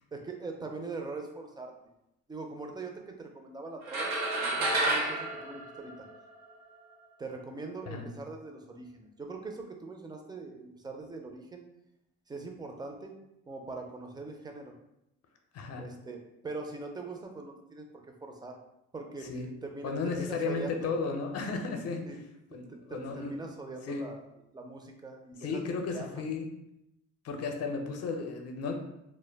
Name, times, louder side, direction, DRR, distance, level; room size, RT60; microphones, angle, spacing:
voice 1, 0.1-1.7 2.3-6.1 7.2-11.7 12.3-13.1 13.5-14.7 15.8-18.6 18.9-19.3 19.6-20.9 22.0-22.2 22.5-24.2 24.5-25.7 25.9-26.2, right 3 dB, 15° right, 3 dB, 0.4 m, -42 dB
sound 1, 3.9-6.5, right 2 dB, 65° right, 0.7 m, -30 dB
voice 2, 15.5-15.9 19.3-19.5 19.8-22.0 22.5-23.3 23.8-24.0 25.4-26.5 27.2-28.7, left 4 dB, 55° left, 4 dB, 0.5 m, -34 dB
2.1 x 2.1 x 3.3 m, 0.86 s
cardioid pair, 90°, 30 cm